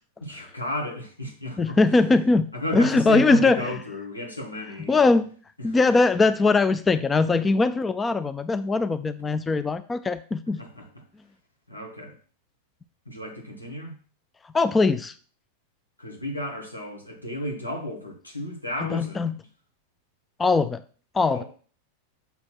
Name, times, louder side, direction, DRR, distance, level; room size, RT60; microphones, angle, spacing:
voice 1, 0.2-1.8 2.5-5.0 5.6-5.8 10.6-11.0 11.7-12.2 13.1-13.9 16.0-19.5 21.3-21.4, left 1 dB, 85° left, 0 dB, 1.9 m, -33 dB
voice 2, 1.6-2.5 2.7-3.6 4.9-5.3 5.6-10.6 14.5-15.1 18.9-19.3 20.4-20.8 21.1-21.4, left 3 dB, 15° left, 12 dB, 0.4 m, -21 dB
6.8 x 4.2 x 6.2 m, 0.41 s
figure-of-eight pair, 90°, 0 cm